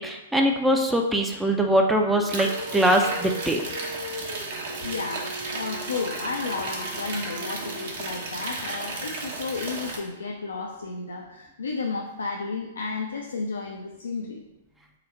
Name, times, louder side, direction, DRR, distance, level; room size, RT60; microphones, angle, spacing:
voice 1, 0.0-3.7, right 1 dB, 5° right, 2 dB, 0.4 m, -22 dB
Dog, 2.0-8.3, equal, 70° left, 1.0 m, -40 dB
sound 1, 2.3-10.0, right 3 dB, 60° right, 0.9 m, -34 dB
voice 2, 4.8-14.4, left 4 dB, 85° left, 0 dB, 0.4 m, -32 dB
3.8 x 2.1 x 4.4 m, 0.94 s
hypercardioid pair, 120°, 0 cm